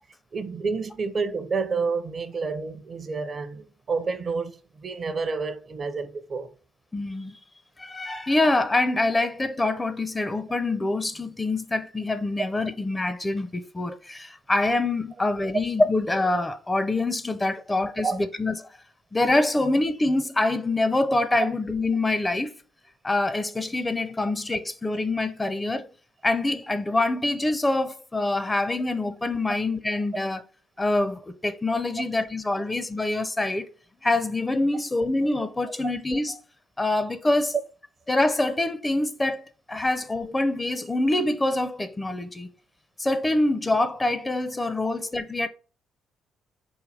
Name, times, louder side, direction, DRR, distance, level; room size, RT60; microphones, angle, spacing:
voice 1, 0.3-6.5 18.0-18.2 21.4-21.5 35.8-35.9 44.8-44.9, right 4 dB, 45° right, 0.5 m, -29 dB
voice 2, 6.9-7.4 7.8-18.7 19.1-22.5 23.0-25.9 26.2-30.4 30.8-33.7 34.0-36.4 36.8-37.6 38.1-42.5 43.0-45.5, left 2 dB, 20° left, 0.5 m, -25 dB
3.9 x 2.2 x 3.3 m
hypercardioid pair, 50°, 0 cm